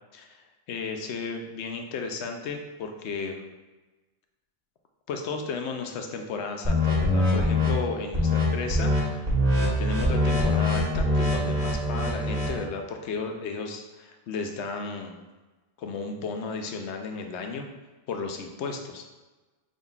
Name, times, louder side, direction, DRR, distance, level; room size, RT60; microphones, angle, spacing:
voice 1, 0.1-3.5 5.1-9.3 9.8-15.2 15.8-17.7 18.1-19.1, left 4 dB, 80° left, 4 dB, 0.9 m, -34 dB
sound 1, 6.6-7.7 8.1-8.4 8.7-9.0 9.3-12.6, left 1 dB, 35° right, 1.4 m, -23 dB
5.2 x 3.7 x 2.3 m, 1.2 s
omnidirectional pair, 1.1 m